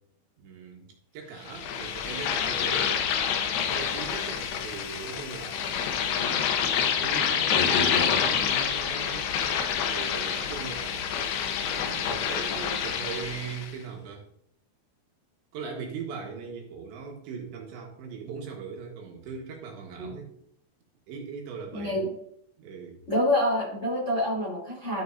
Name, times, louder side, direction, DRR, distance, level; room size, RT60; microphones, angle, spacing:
voice 1, 0.4-3.0 3.7-6.5 6.8-9.3 9.9-11.0 11.6-14.3 15.5-20.3 21.1-22.0 22.6-23.0, right 5 dB, 70° right, 0 dB, 3.5 m, -40 dB
sound 1, 1.5-13.7, left 8 dB, 75° left, 2.4 m, -27 dB
voice 2, 21.7-22.1 23.1-25.0, left 1 dB, 20° left, -6 dB, 2.2 m, -27 dB
14.0 x 6.3 x 2.6 m, 0.70 s
omnidirectional pair, 5.5 m